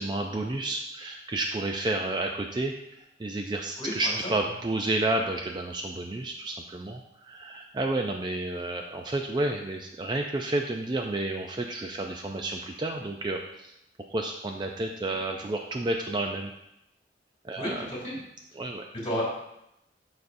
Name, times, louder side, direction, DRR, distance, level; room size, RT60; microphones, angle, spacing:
voice 1, 0.0-13.7 14.1-16.5 17.4-17.9 18.6-18.9, right 2 dB, 25° right, 3 dB, 0.4 m, -31 dB
voice 2, 3.8-4.3 17.6-18.1 19.0-19.3, left 1 dB, 30° left, -5 dB, 2.6 m, -32 dB
11.5 x 4.1 x 2.6 m, 0.82 s
head